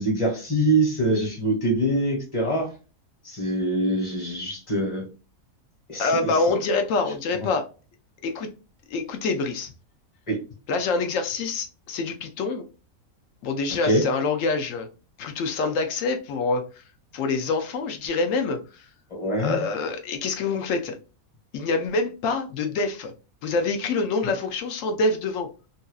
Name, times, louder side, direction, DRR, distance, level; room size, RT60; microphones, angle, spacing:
voice 1, 0.0-2.7 3.2-5.0 5.9-6.3 10.3-10.4 13.8-14.0 19.1-19.6, right 1 dB, 20° left, 1.3 m, -24 dB
voice 2, 6.0-7.7 8.2-8.5 8.9-9.7 10.7-12.7 13.4-14.9 15.2-16.6 17.1-18.9 19.4-21.0 21.5-23.1 23.4-25.5, left 3 dB, 70° left, 0.9 m, -26 dB
2.7 x 2.7 x 2.2 m
omnidirectional pair, 1.5 m